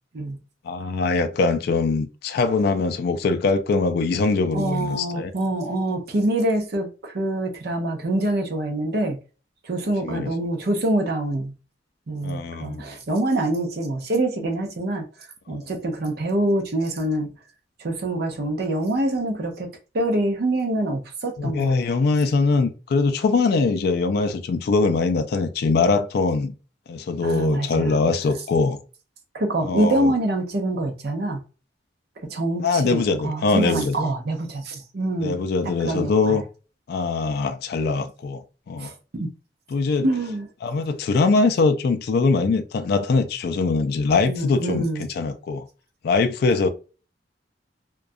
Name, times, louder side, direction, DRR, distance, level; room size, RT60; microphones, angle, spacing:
voice 1, 0.6-5.3 10.0-10.3 12.2-12.9 15.5-15.6 21.4-26.6 26.9-28.8 29.6-30.1 32.6-34.0 35.2-36.4 36.9-38.9 39.7-40.1 40.6-44.9 45.2-45.7 46.0-46.7, left 4 dB, 60° left, 0.3 m, -22 dB
voice 2, 4.5-9.2 9.6-11.5 12.1-15.1 15.5-17.3 17.8-19.7 19.9-21.7 27.2-27.9 29.3-31.4 32.3-36.4 38.8-39.3 40.0-40.5 44.2-45.1, right 1 dB, 60° right, 0.6 m, -25 dB
2.4 x 2.2 x 2.6 m
head